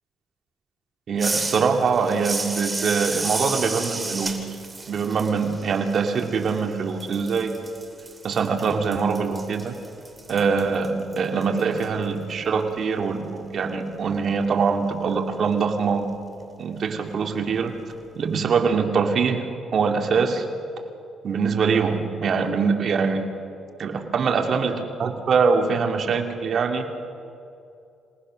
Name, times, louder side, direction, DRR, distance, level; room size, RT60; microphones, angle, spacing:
voice 1, 1.1-4.4 4.9-7.5 8.2-9.8 10.3-16.1 16.6-17.8 18.2-20.5 21.2-23.3 23.8-26.8, right 5 dB, 55° right, 4 dB, 2.5 m, -23 dB
sound 1, 1.2-6.7 7.0-11.9, right 3 dB, 20° right, 2.8 m, -32 dB
sound 2, 10.6-14.4, left 3 dB, 50° left, 3.2 m, -46 dB
27.0 x 19.0 x 6.4 m, 2.5 s
cardioid pair, 90°, 0 cm